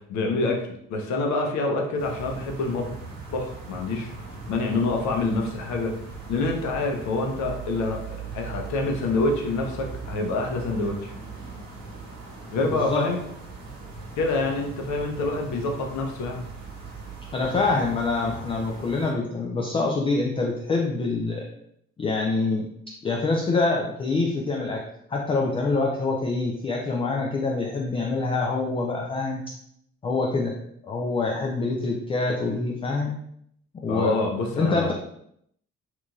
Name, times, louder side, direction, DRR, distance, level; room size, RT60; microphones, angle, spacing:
voice 1, 0.0-2.9 3.3-4.1 4.5-5.9 6.3-11.1 12.5-13.2 14.2-16.4 33.9-34.9, left 3 dB, 45° left, 2 dB, 0.7 m, -26 dB
sound 1, 2.0-19.1, right 4 dB, 70° right, 1.0 m, -39 dB
voice 2, 12.6-13.1 17.3-21.4 22.0-22.7 23.0-24.8 25.1-29.4 30.0-30.5 30.8-33.1 33.8-34.1 34.6-34.9, left 3 dB, 15° left, 0 dB, 0.3 m, -25 dB
3.4 x 2.9 x 2.4 m, 0.70 s
figure-of-eight pair, 45°, 39 cm